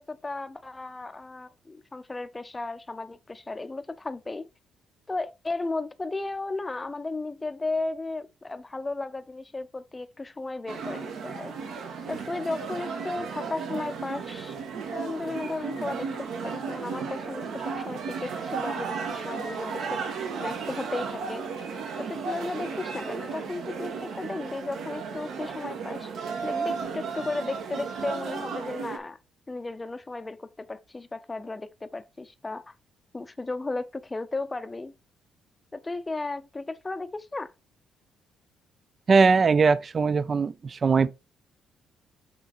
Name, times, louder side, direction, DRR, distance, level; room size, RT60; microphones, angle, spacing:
voice 1, 0.0-4.5 5.1-11.5 12.1-14.6 14.9-21.5 22.0-26.1 26.4-29.2 29.5-32.7 33.1-34.9 35.7-37.5, left 3 dB, 15° left, 0.6 m, -35 dB
sound 1, 10.7-29.0, right 5 dB, 75° right, 1.5 m, -34 dB
voice 2, 39.1-41.1, right 4 dB, 35° right, 0.3 m, -21 dB
8.3 x 3.8 x 4.1 m
cardioid pair, 120°, 0 cm